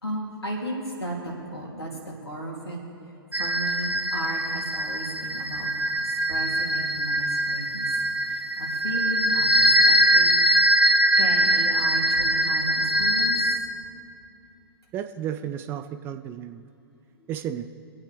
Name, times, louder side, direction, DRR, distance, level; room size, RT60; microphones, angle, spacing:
voice 1, 0.0-2.8 3.4-5.7 6.3-7.9 8.3-10.3 10.7-10.8 11.2-13.3, right 1 dB, 80° left, -1 dB, 3.0 m, -34 dB
sound 1, 3.3-13.6, equal, 90° right, 1.0 m, -22 dB
voice 2, 14.9-16.6 17.3-17.6, right 10 dB, 15° right, 8 dB, 0.3 m, -33 dB
25.0 x 8.6 x 3.4 m, 2.8 s
figure-of-eight pair, 115°, 13 cm